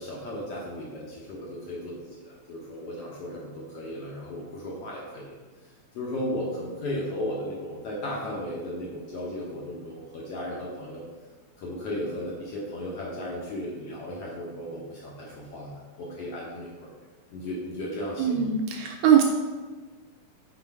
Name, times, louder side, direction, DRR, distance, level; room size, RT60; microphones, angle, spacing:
voice 1, 0.0-5.4 6.0-11.1 11.6-16.9 17.3-18.5, left 1 dB, 65° left, -4 dB, 1.6 m, -35 dB
voice 2, 18.2-19.2, right 9 dB, 80° right, 3 dB, 1.7 m, -21 dB
6.1 x 4.3 x 4.3 m, 1.4 s
omnidirectional pair, 3.6 m